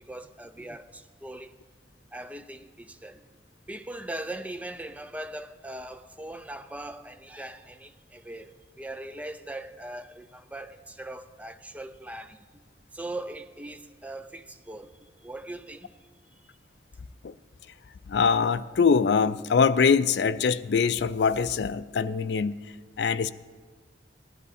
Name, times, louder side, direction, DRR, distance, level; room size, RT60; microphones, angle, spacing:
voice 1, 0.0-1.5 2.1-3.2 3.7-12.4 12.9-14.9 15.2-15.9, right 1 dB, 10° right, 0.4 m, -40 dB
voice 2, 18.1-22.6 23.0-23.3, left 5 dB, 70° left, 0.4 m, -23 dB
16.5 x 11.0 x 4.2 m
head